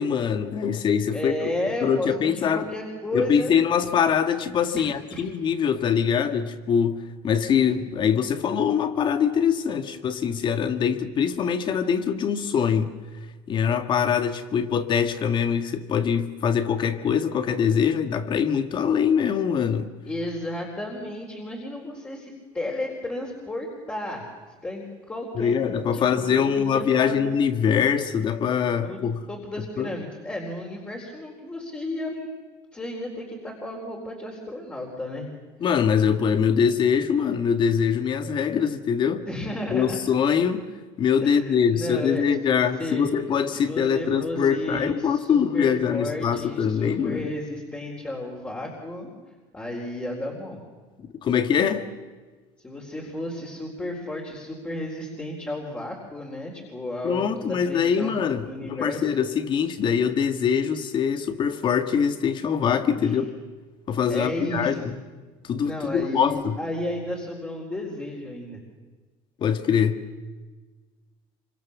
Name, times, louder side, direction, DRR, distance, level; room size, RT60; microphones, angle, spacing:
voice 1, 0.0-1.3 1.8-2.7 3.1-12.9 13.5-19.9 25.3-29.2 29.8-29.9 35.6-39.3 39.7-40.7 41.0-47.3 51.0-51.9 57.0-63.3 63.9-65.0 65.4-66.6 69.4-70.0, left 7 dB, 40° left, 9 dB, 1.8 m, -23 dB
voice 2, 1.1-3.6 4.7-5.3 20.0-24.2 24.6-25.6 25.9-27.2 28.8-29.0 29.3-32.3 32.7-35.3 39.3-40.0 41.2-43.2 43.6-49.1 49.5-50.6 52.6-58.1 58.4-59.1 63.0-63.2 64.1-64.8 65.6-68.6, left 1 dB, 15° left, -2 dB, 4.3 m, -33 dB
26.0 x 25.0 x 7.3 m, 1.3 s
cardioid pair, 135°, 13 cm